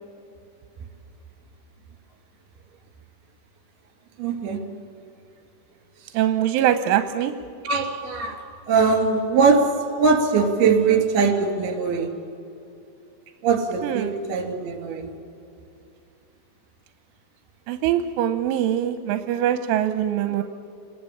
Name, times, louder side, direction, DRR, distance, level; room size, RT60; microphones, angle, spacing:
voice 1, 4.2-4.6 7.6-8.4 8.7-9.7 10.0-12.1 13.4-15.1, right 5 dB, 55° right, 5 dB, 4.4 m, -21 dB
voice 2, 6.1-7.3 13.8-14.1 17.7-20.4, right 11 dB, 85° right, 9 dB, 3.2 m, -23 dB
29.0 x 20.0 x 8.6 m, 2.6 s
omnidirectional pair, 5.6 m